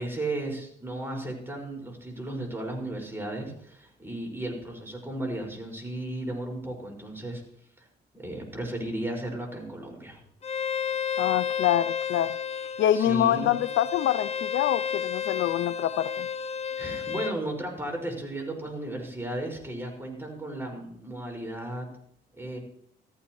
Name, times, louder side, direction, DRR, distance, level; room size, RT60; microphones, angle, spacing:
voice 1, 0.0-7.4 7.8-7.9 8.1-10.2 12.9-13.5 16.8-21.9 22.3-22.6, right 1 dB, 10° right, 5.5 m, -35 dB
Bowed string instrument, 10.4-17.4, left 7 dB, 30° left, 0.7 m, -32 dB
voice 2, 11.2-12.4 12.8-16.3, left 11 dB, 70° left, 0.5 m, -25 dB
15.0 x 14.0 x 3.1 m
cardioid pair, 90°, 20 cm